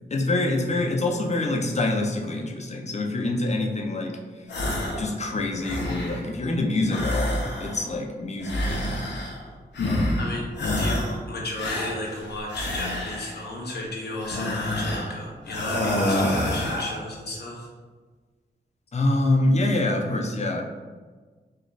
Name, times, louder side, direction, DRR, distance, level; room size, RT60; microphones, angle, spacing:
voice 1, 0.0-4.5 5.0-9.3 9.8-10.2 18.9-20.6, left 2 dB, 40° left, 1 dB, 0.6 m, -26 dB
sound 1, 4.5-5.1 5.4-6.3 6.9-7.9 8.4-9.4 9.7-10.3 10.6-11.2 11.6-13.4 14.2-15.1 15.5-17.0, left 1 dB, 90° left, 0.7 m, -27 dB
voice 2, 10.2-10.5 10.8-17.7, left 1 dB, 65° left, -3 dB, 0.9 m, -34 dB
3.2 x 2.4 x 3.9 m, 1.4 s
cardioid pair, 60°, 18 cm